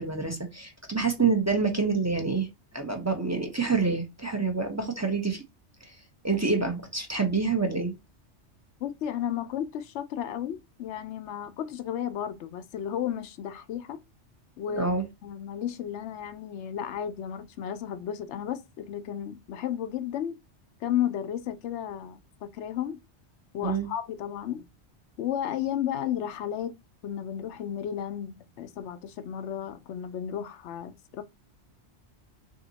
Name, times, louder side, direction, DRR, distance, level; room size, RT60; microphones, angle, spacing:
voice 1, 0.0-2.5 2.7-5.4 5.8-5.9 6.2-7.9 14.7-15.1 23.6-23.9, right 4 dB, 20° right, 0.6 m, -27 dB
voice 2, 8.8-14.0 14.6-14.9 15.2-20.4 20.8-23.0 23.5-24.7 25.2-26.7 27.0-31.2, left 10 dB, 80° left, 0.9 m, -33 dB
3.5 x 2.8 x 3.9 m
omnidirectional pair, 1.2 m